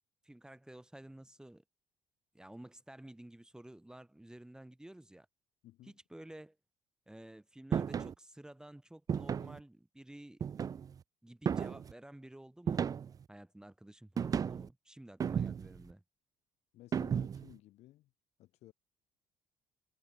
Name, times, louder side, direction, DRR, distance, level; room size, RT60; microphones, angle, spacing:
voice 1, 0.2-1.6 2.3-5.3 5.8-6.6 7.1-10.4 11.2-12.9 13.3-16.0, right 1 dB, 5° right, 2.0 m, -52 dB
voice 2, 5.6-5.9 16.7-18.1 18.4-18.7, left 16 dB, 75° left, 6.8 m, -57 dB
sound 1, 7.7-8.1 9.1-9.6 10.4-11.0 11.5-11.9 12.7-13.2 14.2-14.7 15.2-15.8 16.9-17.5, right 7 dB, 35° right, 0.4 m, -34 dB
cardioid pair, 100°, 11 cm